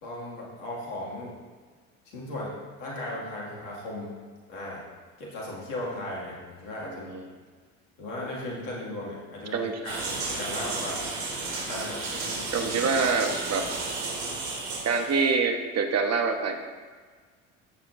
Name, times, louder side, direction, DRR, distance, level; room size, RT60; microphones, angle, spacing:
voice 1, 0.0-1.3 2.1-4.1 4.5-4.8 5.2-7.2 8.0-11.0 11.6-12.7 13.8-13.9, left 1 dB, 80° left, -5 dB, 2.4 m, -37 dB
voice 2, 6.8-7.3 9.5-9.7 12.5-13.7 14.8-16.6, right 4 dB, 40° right, 5 dB, 1.4 m, -26 dB
sound 1, 9.8-15.3, right 3 dB, 60° right, 3.1 m, -33 dB
15.5 x 7.1 x 2.7 m, 1.5 s
hypercardioid pair, 65°, 38 cm